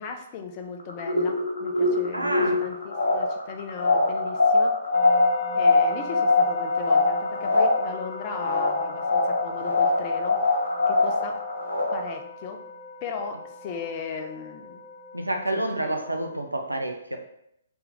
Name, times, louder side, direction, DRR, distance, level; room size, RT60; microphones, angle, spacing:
voice 1, 0.0-4.8 5.5-10.4 10.9-11.4 11.9-12.6 13.0-14.8 15.5-16.0, left 5 dB, 30° left, 4 dB, 0.5 m, -37 dB
sound 1, 0.8-12.1, left 3 dB, 70° left, 0.8 m, -23 dB
voice 2, 2.1-2.6 15.1-17.2, right 1 dB, 90° right, 4 dB, 0.6 m, -28 dB
sound 2, 4.9-16.4, left 3 dB, 15° left, 0.9 m, -40 dB
3.3 x 3.0 x 3.5 m, 0.77 s
figure-of-eight pair, 125°, 0 cm